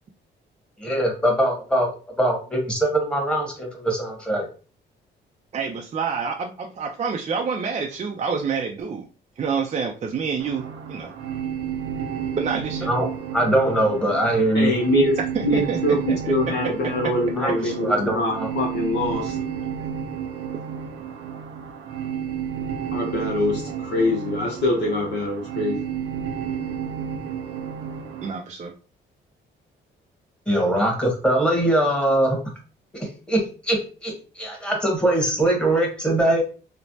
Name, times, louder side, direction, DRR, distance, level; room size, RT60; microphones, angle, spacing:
voice 1, 0.8-1.9 2.2-4.5 12.8-13.1 13.3-14.7 17.4-18.5 30.5-32.4 33.0-36.4, right 1 dB, 5° left, 0 dB, 1.2 m, -22 dB
voice 2, 5.5-9.0 9.4-11.1 12.4-12.9 15.3-16.3 17.6-17.7 28.2-28.7, right 5 dB, 35° right, 1 dB, 0.4 m, -28 dB
sound 1, 10.4-28.3, right 8 dB, 85° right, 0.6 m, -31 dB
voice 3, 14.5-15.1 15.4-19.4 22.9-25.8, left 1 dB, 60° left, -2 dB, 0.7 m, -24 dB
3.1 x 2.1 x 2.6 m, 0.37 s
cardioid pair, 90°, 20 cm